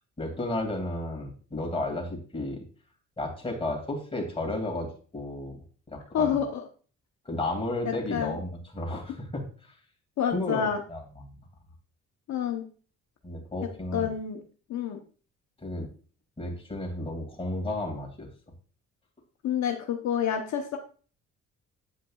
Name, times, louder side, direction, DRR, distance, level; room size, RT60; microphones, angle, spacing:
voice 1, 0.2-2.6 3.2-5.6 5.9-6.4 7.3-9.8 10.3-11.4 13.2-14.1 15.6-15.9 16.4-18.3, left 2 dB, 20° left, 1 dB, 2.4 m, -33 dB
voice 2, 6.1-6.6 7.8-8.4 10.2-10.8 12.3-12.6 13.9-14.4 14.7-15.0 19.4-20.8, left 8 dB, 65° left, 3 dB, 0.9 m, -28 dB
8.5 x 5.3 x 2.3 m, 0.40 s
cardioid pair, 90°, 30 cm